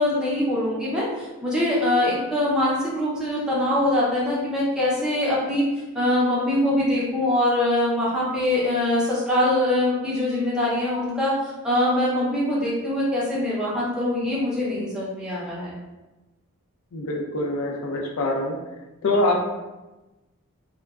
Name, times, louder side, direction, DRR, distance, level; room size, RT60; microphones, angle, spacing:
voice 1, 0.0-5.6 5.9-15.7, left 1 dB, 5° right, -8 dB, 0.6 m, -23 dB
voice 2, 16.9-18.6 19.0-19.5, left 1 dB, 70° left, 1 dB, 0.4 m, -24 dB
3.0 x 2.2 x 2.3 m, 1.1 s
head